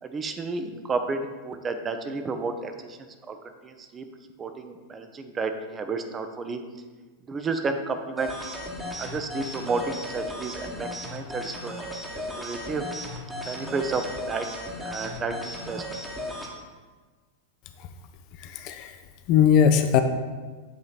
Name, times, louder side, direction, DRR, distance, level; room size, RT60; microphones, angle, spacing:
voice 1, 0.0-3.4 3.6-4.1 4.4-6.6 7.2-8.3 9.0-11.7 12.1-12.8 13.4-14.5 14.8-15.8, right 4 dB, 20° right, 7 dB, 0.5 m, -31 dB
sound 1, 8.2-16.5, left 1 dB, ahead, 1.0 m, -36 dB
voice 2, 18.4-18.9 19.3-20.0, left 8 dB, 40° left, 7 dB, 0.4 m, -19 dB
8.3 x 3.1 x 4.0 m, 1.4 s
figure-of-eight pair, 90°, 0 cm